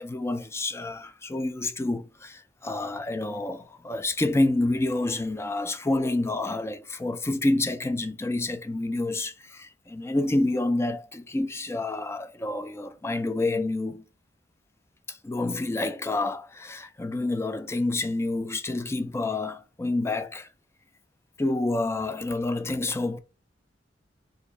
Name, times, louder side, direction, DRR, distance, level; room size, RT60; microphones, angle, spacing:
voice 1, 0.0-14.0 15.1-20.5 21.4-23.2, left 2 dB, 15° left, 0.3 m, -28 dB
3.0 x 2.6 x 3.7 m
head